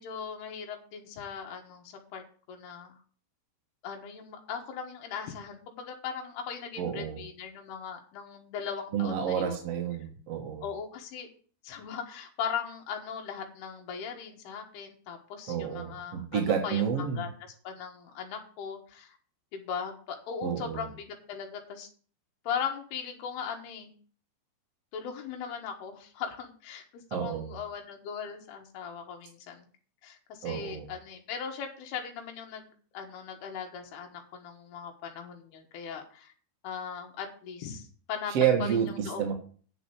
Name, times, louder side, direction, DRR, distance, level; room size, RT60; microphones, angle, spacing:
voice 1, 0.0-3.0 3.8-9.6 10.6-11.3 11.6-19.1 19.5-21.9 22.4-23.9 24.9-29.7 30.0-32.7 32.9-36.3 36.6-38.3 38.6-38.7 39.0-39.2, left 7 dB, 85° left, 2 dB, 3.5 m, -39 dB
voice 2, 6.8-7.2 8.9-10.6 15.5-17.2 20.4-20.9 27.1-27.6 30.4-30.9 38.3-39.3, right 8 dB, 55° right, 1 dB, 1.9 m, -29 dB
9.1 x 6.1 x 7.0 m, 0.42 s
omnidirectional pair, 4.5 m